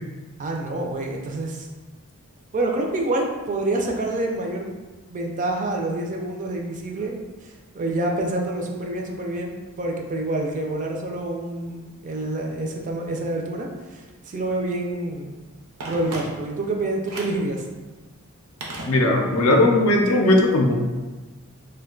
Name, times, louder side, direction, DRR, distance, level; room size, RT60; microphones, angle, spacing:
voice 1, 0.4-1.7 2.5-4.7 5.1-15.4 15.9-17.7, right 2 dB, 35° right, 1 dB, 0.3 m, -27 dB
Telephone, 15.8-16.7 17.1-17.5 18.6-19.5 19.7-19.8, right 1 dB, 85° right, 0.6 m, -35 dB
voice 2, 18.9-20.8, left 1 dB, 70° left, 2 dB, 0.5 m, -18 dB
2.5 x 2.2 x 3.7 m, 1.2 s
head